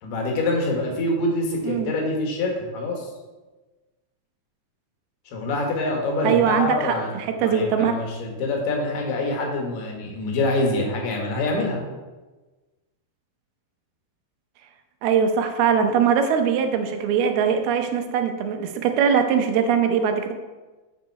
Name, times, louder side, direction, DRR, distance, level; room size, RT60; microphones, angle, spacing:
voice 1, 0.0-3.1 5.3-11.8, left 2 dB, 90° left, 0 dB, 3.5 m, -25 dB
voice 2, 6.2-8.0 15.0-20.3, right 7 dB, 85° right, 6 dB, 2.7 m, -21 dB
7.3 x 5.9 x 4.6 m, 1.2 s
omnidirectional pair, 4.4 m